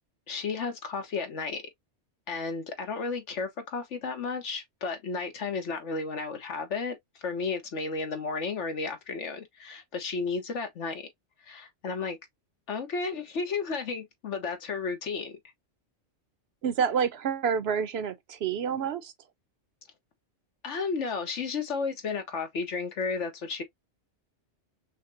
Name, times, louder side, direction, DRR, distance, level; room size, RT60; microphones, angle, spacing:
voice 1, 0.3-1.6 2.3-11.1 11.4-12.2 12.7-15.4 20.6-23.6, left 4 dB, 80° left, 1.4 m, -33 dB
voice 2, 16.6-19.1, right 7 dB, 65° right, 0.9 m, -28 dB
5.7 x 2.1 x 2.6 m
omnidirectional pair, 1.2 m